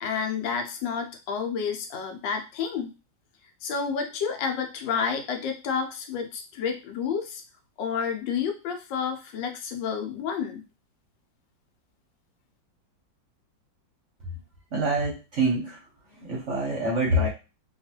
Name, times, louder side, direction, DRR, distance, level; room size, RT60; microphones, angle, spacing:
voice 1, 0.0-2.9 3.6-7.4 7.8-10.6, left 6 dB, 80° left, 4 dB, 1.3 m, -30 dB
voice 2, 14.7-15.8 16.2-17.3, right 1 dB, 55° right, -4 dB, 0.8 m, -25 dB
3.0 x 2.3 x 2.8 m, 0.30 s
omnidirectional pair, 2.0 m